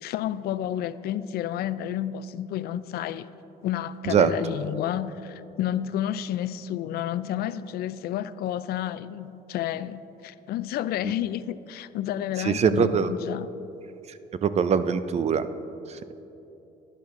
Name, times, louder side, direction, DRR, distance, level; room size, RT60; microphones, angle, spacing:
voice 1, 0.0-3.3 3.6-13.5, left 11 dB, 70° left, 15 dB, 0.4 m, -30 dB
voice 2, 12.4-13.1 14.4-15.4, right 7 dB, 40° right, 12 dB, 0.5 m, -22 dB
11.5 x 10.5 x 3.7 m, 3.0 s
cardioid pair, 110°, 17 cm